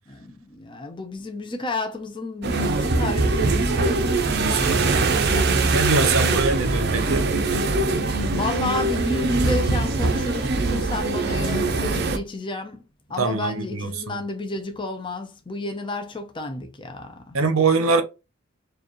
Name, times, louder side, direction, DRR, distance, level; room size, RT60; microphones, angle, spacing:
voice 1, 0.1-6.6 8.3-12.8 13.1-17.4, left 2 dB, 25° left, 0.7 m, -32 dB
sound 1, 2.4-12.2, right 3 dB, 50° right, 0.7 m, -22 dB
voice 2, 4.4-5.2 5.7-7.2 13.2-14.2 17.3-18.0, right 3 dB, 80° right, 0.9 m, -23 dB
4.8 x 2.5 x 3.0 m
head